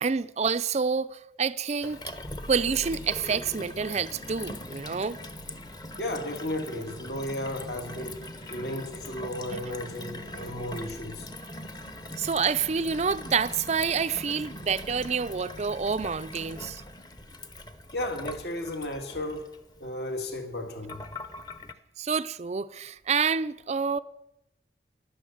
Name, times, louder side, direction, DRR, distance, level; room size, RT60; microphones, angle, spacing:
voice 1, 0.0-2.0 2.5-5.2 12.2-16.8 22.0-24.0, right 5 dB, 35° right, 0.5 m, -28 dB
Gurgling / Water tap faucet / Sink (filling or washing), 1.8-21.7, left 1 dB, 20° left, 0.9 m, -41 dB
voice 2, 6.0-11.3 17.9-19.5 19.8-21.0, left 1 dB, 65° left, 1.9 m, -34 dB
15.5 x 11.5 x 7.2 m
head